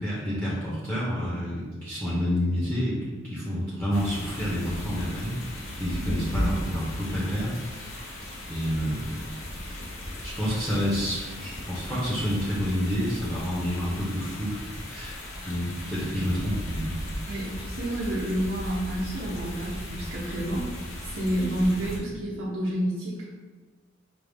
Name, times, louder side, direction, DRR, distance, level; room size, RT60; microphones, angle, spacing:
voice 1, 0.0-5.4 5.8-7.5 8.5-9.1 9.6-9.8 10.2-15.2 15.4-17.0, equal, 10° left, -8 dB, 0.8 m, -29 dB
sound 1, 3.9-22.0, equal, 90° left, 0.8 m, -36 dB
voice 2, 17.2-20.7 21.1-23.2, right 1 dB, 65° right, -10 dB, 0.9 m, -29 dB
5.2 x 2.0 x 3.4 m, 1.3 s
head